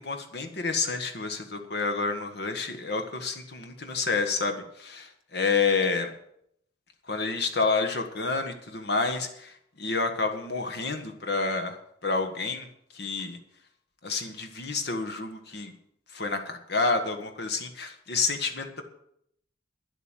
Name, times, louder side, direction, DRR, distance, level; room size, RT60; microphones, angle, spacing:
voice 1, 0.0-6.1 7.1-11.8 12.0-12.7 12.9-13.4 14.0-15.7 16.1-18.8, left 4 dB, 55° left, 6 dB, 1.4 m, -29 dB
10.5 x 8.0 x 9.0 m, 0.72 s
head